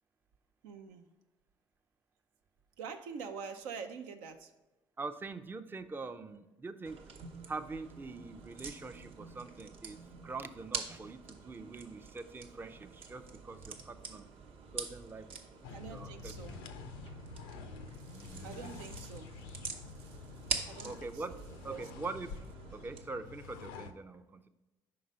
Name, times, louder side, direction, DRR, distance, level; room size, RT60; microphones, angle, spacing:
voice 1, 0.6-1.1 2.8-4.5 15.7-16.6 17.9-19.4 19.8-21.9, right 6 dB, 80° right, 6 dB, 0.5 m, -46 dB
voice 2, 5.0-7.0 7.5-14.3 14.7-15.3 15.9-16.6 18.1-18.8 19.6-19.7 20.8-21.3 21.6-22.5 22.7-24.5, right 3 dB, 20° right, 8 dB, 0.4 m, -44 dB
sound 1, 6.9-23.0, right 5 dB, 60° right, 0.8 m, -45 dB
sound 2, 15.6-23.9, left 4 dB, 80° left, 0.4 m, -48 dB
5.4 x 3.8 x 5.3 m, 1.0 s
hypercardioid pair, 55°, 11 cm